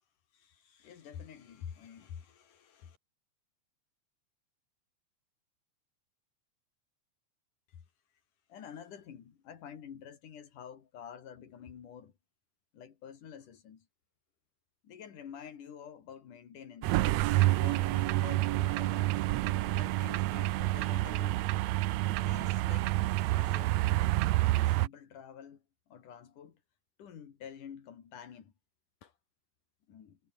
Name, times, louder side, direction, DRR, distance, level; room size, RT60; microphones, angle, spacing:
voice 1, 0.3-3.0 7.7-7.8 8.5-12.1 12.7-13.9 14.8-17.0 17.4-21.5 22.1-22.9 23.4-23.8 24.4-25.6 25.9-26.6 27.0-28.5 29.0-29.1 29.9-30.2, left 8 dB, 90° left, 4.1 m, -49 dB
sound 1, 16.8-24.9, right 17 dB, 75° right, 1.7 m, -28 dB
omnidirectional pair, 3.5 m